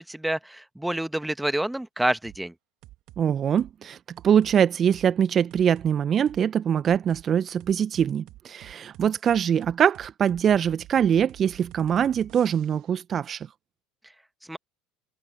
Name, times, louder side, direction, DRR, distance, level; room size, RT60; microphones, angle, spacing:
voice 1, 0.0-2.5 14.5-14.6, right 1 dB, 5° right, 1.5 m, -28 dB
sound 1, 2.2-2.4 2.8-3.2 3.6-3.8 4.2-4.6 4.9-5.1 5.5-5.9 6.3-6.4 6.8-7.2 7.6-12.9, right 17 dB, 55° right, 2.9 m, -49 dB
voice 2, 3.2-4.0 4.2-13.5, right 8 dB, 35° right, 1.3 m, -23 dB
figure-of-eight pair, 70°, 0 cm